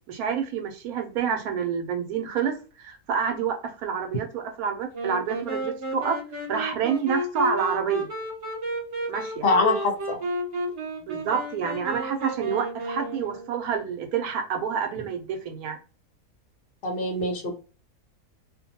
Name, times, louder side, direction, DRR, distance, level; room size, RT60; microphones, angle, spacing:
voice 1, 0.1-6.2 6.5-8.1 9.1-9.4 11.0-15.8, right 7 dB, 70° right, 1.1 m, -28 dB
Wind instrument woodwind instrument, 4.9-13.7, right 1 dB, 50° right, 1.1 m, -32 dB
voice 2, 9.4-10.2 16.8-17.5, left 2 dB, 60° left, 0.6 m, -23 dB
2.6 x 2.2 x 2.7 m
omnidirectional pair, 1.6 m